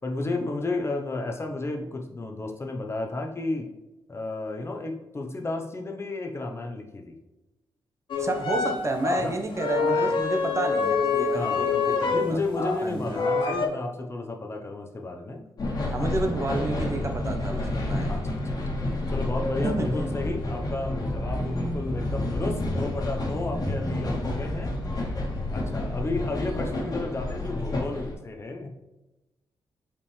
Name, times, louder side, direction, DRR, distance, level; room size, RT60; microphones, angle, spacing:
voice 1, 0.0-3.7 4.1-7.2 9.2-9.4 11.3-11.6 12.1-15.4 16.0-16.3 18.1-18.6 19.1-24.7 25.5-28.7, left 2 dB, 30° left, 2 dB, 0.8 m, -32 dB
sound 1, 8.1-12.8 13.1-13.7, left 4 dB, 70° left, 1.0 m, -26 dB
voice 2, 8.2-12.4 12.8-13.2 15.9-18.2 19.6-20.1, right 2 dB, 35° right, 4 dB, 1.1 m, -30 dB
sound 2, 15.6-28.1, left 1 dB, 45° left, 1.7 m, -29 dB
5.6 x 5.1 x 3.3 m, 1.0 s
cardioid pair, 80°, 9 cm